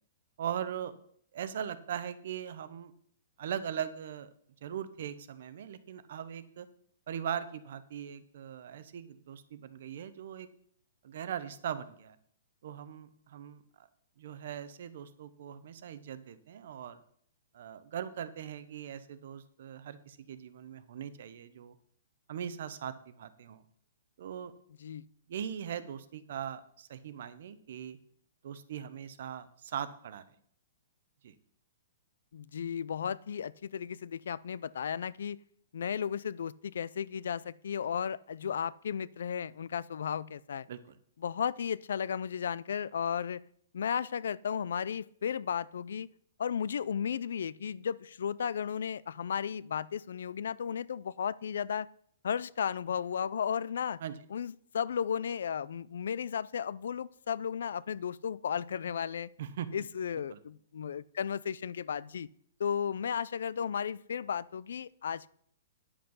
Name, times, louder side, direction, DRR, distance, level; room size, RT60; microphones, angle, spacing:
voice 1, 0.4-0.9 1.3-2.9 3.4-4.3 4.6-6.7 7.1-10.5 11.0-12.2 12.6-13.9 14.2-17.0 17.5-21.8 22.3-23.6 24.2-24.5 25.3-28.0 28.4-30.2 31.2-31.3 40.7-41.0 54.0-54.2 59.4-59.8 60.3-60.4, right 9 dB, 45° right, 14 dB, 0.8 m, -40 dB
voice 2, 32.3-35.4 35.7-40.7 41.2-43.4 43.7-46.1 46.4-51.9 52.2-54.0 54.3-59.3 59.7-62.3 62.6-65.3, left 7 dB, 65° left, 21 dB, 0.4 m, -34 dB
10.0 x 7.9 x 5.4 m, 0.63 s
hypercardioid pair, 180°, 0 cm